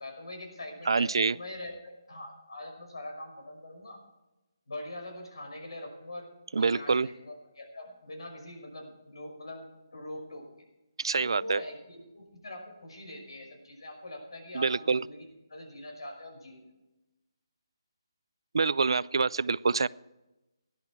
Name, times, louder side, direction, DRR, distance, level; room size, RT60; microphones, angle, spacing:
voice 1, 0.0-4.0 4.7-10.5 11.2-16.7, left 1 dB, 80° left, 3 dB, 5.7 m, -43 dB
voice 2, 0.9-1.4 6.5-7.1 11.0-11.6 14.5-15.0 18.5-19.9, right 4 dB, 75° right, 21 dB, 0.4 m, -26 dB
16.5 x 11.5 x 4.7 m, 1.0 s
hypercardioid pair, 165°, 3 cm